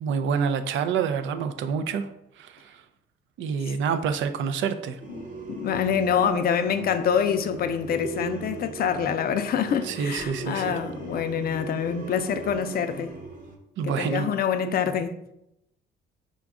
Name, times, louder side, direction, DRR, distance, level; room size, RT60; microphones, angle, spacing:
voice 1, 0.0-2.1 2.4-2.8 3.4-5.0 9.8-10.8 13.8-14.3, right 6 dB, 75° right, 0.4 m, -27 dB
sound 1, 5.0-13.6, right 3 dB, 40° right, 0.9 m, -38 dB
voice 2, 5.5-13.1 13.8-15.1, left 7 dB, 50° left, 0.4 m, -26 dB
5.0 x 2.3 x 3.5 m
cardioid pair, 90°, 20 cm